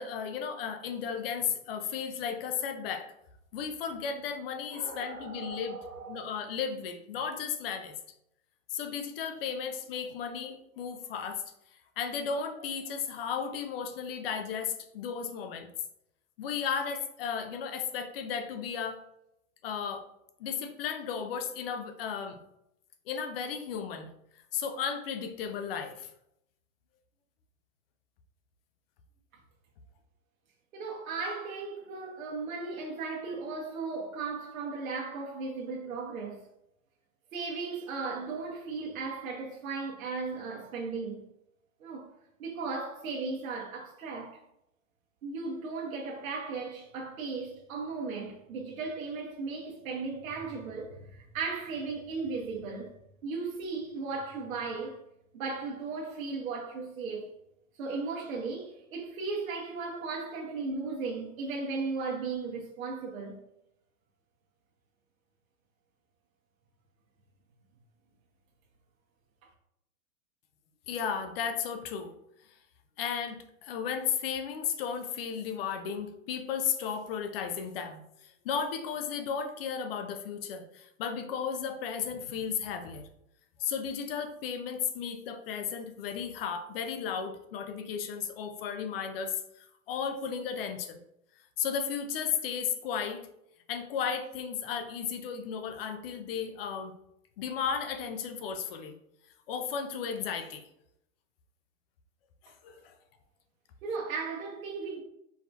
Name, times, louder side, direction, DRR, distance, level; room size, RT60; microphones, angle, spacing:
voice 1, 0.0-3.1 3.5-5.8 6.1-8.0 8.7-11.4 12.0-15.7 16.4-19.0 19.6-20.1 20.4-22.4 23.1-24.1 24.5-26.1 70.9-72.1 72.5-72.6 73.0-83.1 83.6-91.0 91.6-93.3 93.7-96.9 97.4-99.0 99.5-100.7 102.4-102.9, left 7 dB, 45° left, 0.6 m, -34 dB
voice 2, 4.7-6.3 30.7-36.4 37.3-41.3 41.8-42.1 42.4-44.4 45.2-52.9 53.2-55.0 55.3-57.3 57.8-63.4 103.8-105.0, right 4 dB, 75° right, 1.2 m, -36 dB
4.7 x 2.7 x 3.4 m
hypercardioid pair, 145°, 41 cm